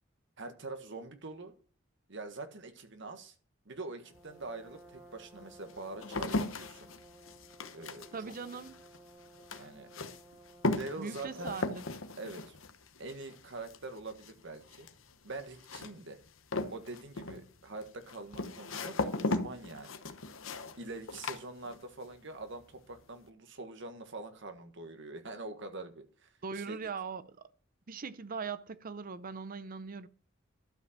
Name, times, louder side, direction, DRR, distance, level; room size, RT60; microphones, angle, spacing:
voice 1, 0.4-1.5 2.1-3.3 3.6-6.9 7.7-8.1 9.5-9.9 10.7-11.6 12.2-12.6 13.0-14.9 15.2-16.2 16.7-20.0 20.8-26.3 26.5-26.8, right 3 dB, 65° right, 1.6 m, -44 dB
Brass instrument, 4.0-11.8, right 2 dB, 5° right, 1.4 m, -57 dB
sound 1, 4.2-4.3 5.0-22.1 22.4-23.0, left 2 dB, 80° left, 1.1 m, -38 dB
voice 2, 8.1-8.7 11.0-11.8 26.4-27.4 27.9-30.1, right 5 dB, 45° right, 0.6 m, -40 dB
12.5 x 5.3 x 7.4 m
head